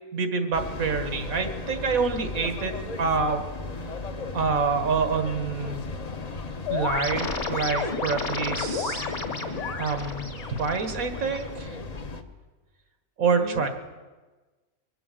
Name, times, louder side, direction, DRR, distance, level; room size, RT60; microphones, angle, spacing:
voice 1, 0.1-3.5 4.3-5.8 6.7-9.0 9.8-10.3 10.6-11.8 13.2-13.7, right 5 dB, 80° right, 7 dB, 1.8 m, -27 dB
sound 1, 0.5-12.2, left 3 dB, 35° left, 0.8 m, -36 dB
voice 2, 5.9-6.8 13.4-13.7, left 4 dB, 70° left, 2 dB, 2.0 m, -43 dB
sound 2, 6.7-11.6, left 4 dB, 55° left, 2.1 m, -32 dB
23.0 x 7.9 x 7.6 m, 1.3 s
omnidirectional pair, 1.4 m